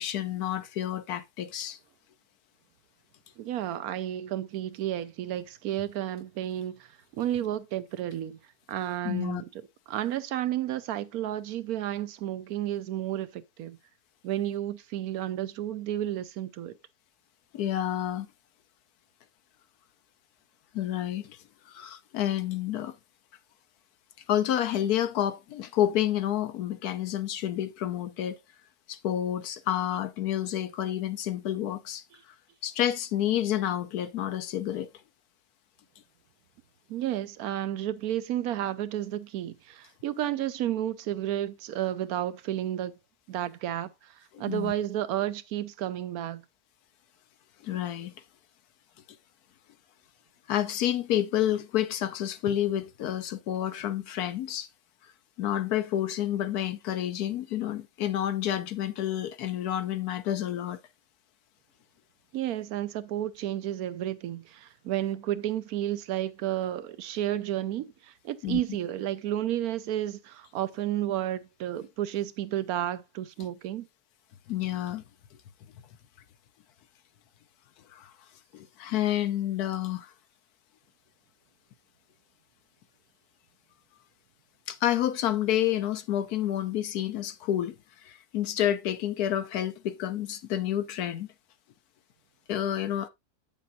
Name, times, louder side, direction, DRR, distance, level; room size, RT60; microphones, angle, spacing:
voice 1, 0.0-1.8 9.0-9.4 17.5-18.3 20.7-21.4 21.7-22.9 24.3-28.4 28.9-32.0 32.6-34.9 44.3-44.7 47.6-48.1 50.5-54.7 55.4-60.8 68.4-68.6 74.5-75.0 77.9-78.1 78.5-80.1 84.7-87.7 88.0-91.3 92.5-93.1, left 11 dB, 75° left, 1.2 m, -29 dB
voice 2, 3.4-6.9 7.1-8.4 8.7-9.5 9.9-13.8 14.2-16.7 36.9-42.9 43.3-43.9 44.4-46.4 62.3-67.9 68.2-73.9, right 12 dB, 70° right, 1.1 m, -31 dB
8.5 x 7.0 x 2.6 m
omnidirectional pair, 1.7 m